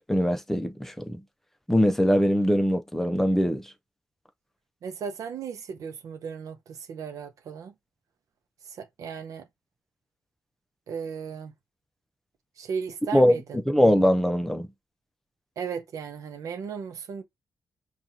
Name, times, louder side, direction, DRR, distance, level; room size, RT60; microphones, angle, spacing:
voice 1, 0.1-1.2 1.7-3.7 13.1-13.4 13.7-14.7, equal, 5° left, 0.6 m, -22 dB
voice 2, 4.8-7.7 8.7-9.5 10.9-11.5 12.6-13.4 15.6-17.2, right 6 dB, 80° right, 0.7 m, -36 dB
5.7 x 2.4 x 2.7 m
cardioid pair, 80°, 6 cm